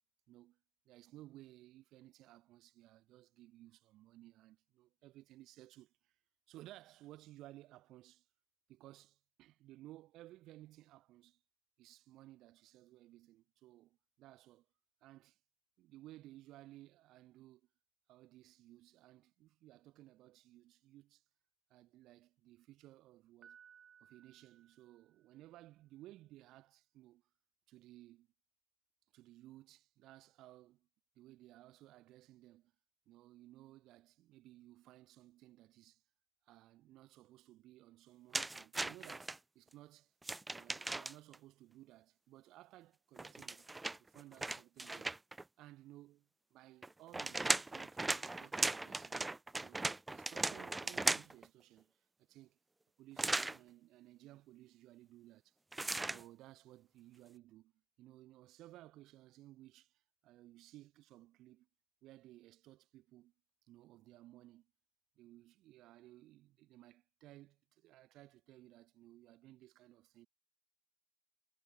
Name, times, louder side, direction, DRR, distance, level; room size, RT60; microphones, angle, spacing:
voice 1, 0.3-0.6 0.8-6.1 6.5-8.3 8.7-11.4 11.8-14.7 15.0-15.4 15.8-17.7 18.1-21.2 21.7-23.6 24.0-27.2 27.7-28.3 29.1-30.9 31.2-32.7 33.1-36.0 36.5-40.1 40.5-43.7 44.0-45.1 45.6-49.2 49.6-52.6 53.0-55.6 56.0-57.7 58.0-61.7 62.0-63.3 63.7-64.7 65.2-70.3, right 16 dB, 70° right, 4.0 m, -59 dB
Piano, 23.4-25.5, right 8 dB, 45° right, 5.7 m, -63 dB
sound 1, 38.3-39.4 40.2-41.4 43.2-45.4 46.8-51.5 53.2-53.6 55.7-56.2, right 2 dB, 15° right, 0.3 m, -37 dB
supercardioid pair, 90°, 0 cm